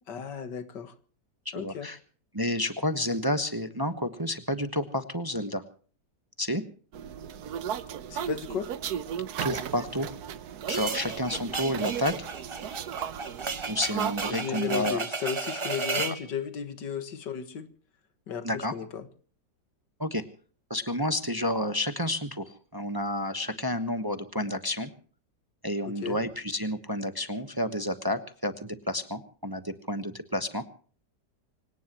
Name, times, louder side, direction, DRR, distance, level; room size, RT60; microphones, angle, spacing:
voice 1, 0.1-0.9 1.5-1.9 8.1-8.7 14.3-17.7 18.3-19.1 25.8-26.2, left 7 dB, 85° left, 2.2 m, -35 dB
voice 2, 1.4-2.0 2.3-5.6 6.4-6.6 9.4-10.1 10.7-12.3 13.7-15.0 18.4-18.7 20.0-20.2 20.7-24.9 25.6-30.6, left 1 dB, 15° right, 0.9 m, -30 dB
sound 1, 6.9-14.3, right 9 dB, 65° right, 1.4 m, -35 dB
sound 2, 10.7-16.2, right 4 dB, 35° right, 0.5 m, -34 dB
25.5 x 18.0 x 3.0 m
omnidirectional pair, 1.8 m